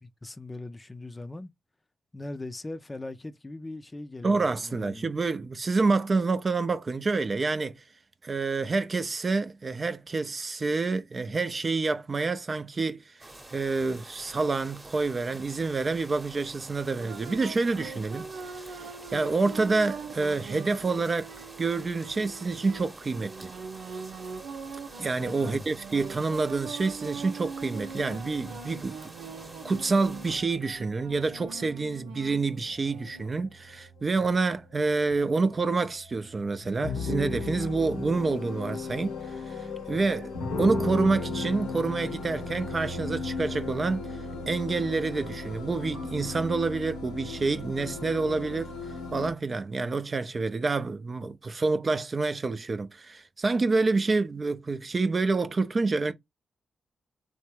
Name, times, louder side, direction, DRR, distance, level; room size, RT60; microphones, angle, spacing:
voice 1, 0.0-1.5 2.1-5.1 25.4-25.7, left 2 dB, 25° left, 0.5 m, -40 dB
voice 2, 4.2-7.8 8.2-13.1 13.5-18.3 18.5-21.3 21.6-23.5 25.0-29.0 29.6-44.2 44.5-48.8 49.1-56.1, right 3 dB, 40° right, 0.5 m, -28 dB
sound 1, 13.2-30.4, right 1 dB, 25° right, 1.0 m, -48 dB
sound 2, 17.0-33.3, right 5 dB, 85° right, 0.7 m, -42 dB
sound 3, 31.0-49.3, left 3 dB, 85° left, 0.9 m, -36 dB
3.3 x 2.2 x 3.2 m
hypercardioid pair, 45°, 0 cm